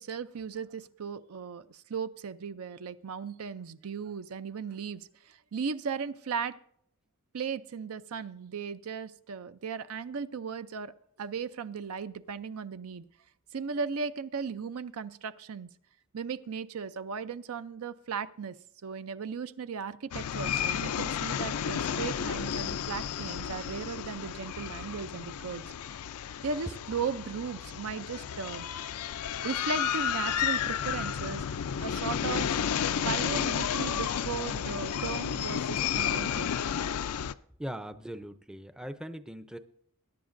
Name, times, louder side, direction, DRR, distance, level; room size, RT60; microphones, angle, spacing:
voice 1, 0.0-6.6 7.3-10.9 11.2-13.1 13.5-15.7 16.1-18.5 18.8-25.6 26.4-28.7 29.4-31.5 31.8-36.5, right 6 dB, 70° right, 13 dB, 0.5 m, -36 dB
sound 1, 20.1-37.3, left 8 dB, 75° left, 0.4 m, -32 dB
voice 2, 37.6-39.6, equal, 5° right, 10 dB, 0.5 m, -40 dB
21.5 x 10.0 x 2.6 m, 0.69 s
head